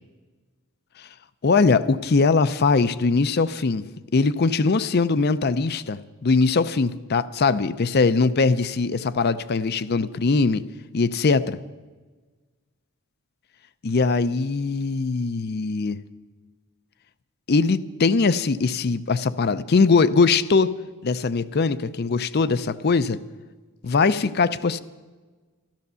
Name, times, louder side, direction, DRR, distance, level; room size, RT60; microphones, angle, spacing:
voice 1, 1.4-3.8 4.1-10.7 10.9-11.6 13.8-16.0 17.5-20.8 21.0-23.2 23.8-24.8, left 4 dB, 50° left, 15 dB, 0.5 m, -21 dB
13.5 x 13.0 x 6.9 m, 1.4 s
head